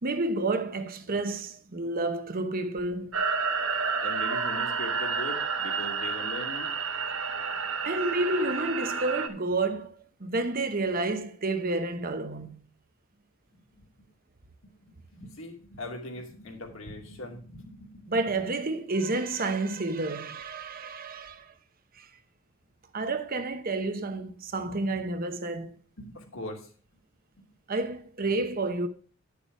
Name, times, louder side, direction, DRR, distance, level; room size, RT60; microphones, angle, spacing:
voice 1, 0.0-3.2 7.8-9.9 10.2-12.5 18.1-21.5 22.0-22.1 22.9-25.7 27.7-28.9, right 2 dB, 45° right, 1.0 m, -30 dB
sound 1, 3.1-9.3, right 5 dB, 70° right, 1.3 m, -30 dB
voice 2, 4.0-6.7 13.5-14.1 14.6-18.1 24.6-25.0 26.0-26.7 27.4-27.5, left 1 dB, 70° left, 2.7 m, -41 dB
10.5 x 6.9 x 4.6 m
head